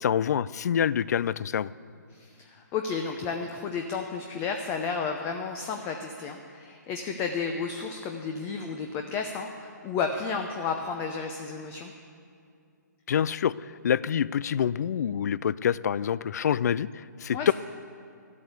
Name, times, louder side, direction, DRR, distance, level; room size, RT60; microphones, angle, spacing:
voice 1, 0.0-1.7 13.1-13.5 13.8-17.5, left 8 dB, 60° left, 19 dB, 0.4 m, -26 dB
voice 2, 2.1-11.9 17.3-17.5, left 5 dB, 20° left, 4 dB, 0.7 m, -32 dB
13.5 x 8.4 x 8.2 m, 2.3 s
hypercardioid pair, 145°, 10 cm